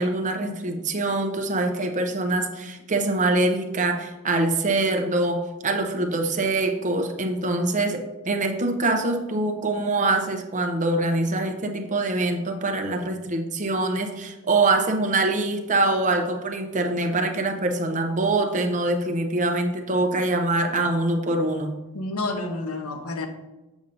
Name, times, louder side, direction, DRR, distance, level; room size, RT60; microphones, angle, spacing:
voice 1, 0.0-21.7, right 2 dB, 35° right, 4 dB, 0.7 m, -24 dB
voice 2, 21.9-23.3, left 2 dB, 75° left, 5 dB, 0.9 m, -29 dB
7.1 x 6.9 x 2.6 m, 1.0 s
head